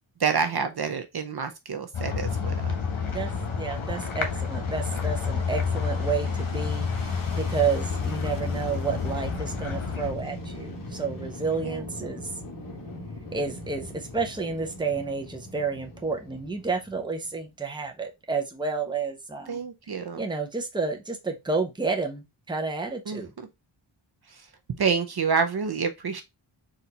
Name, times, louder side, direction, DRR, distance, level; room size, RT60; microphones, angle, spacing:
voice 1, 0.2-2.8 11.6-11.8 19.5-20.2 23.1-23.2 24.8-26.2, right 5 dB, 50° right, 0.6 m, -28 dB
sound 1, 1.9-10.1, left 5 dB, 75° left, 1.2 m, -29 dB
Fixed-wing aircraft airplane, 2.3-17.5, left 1 dB, 40° left, 1.4 m, -40 dB
voice 2, 3.6-12.3 13.3-23.3, right 4 dB, 10° right, 0.7 m, -30 dB
4.3 x 2.6 x 4.0 m
wide cardioid pair, 130°, 50 cm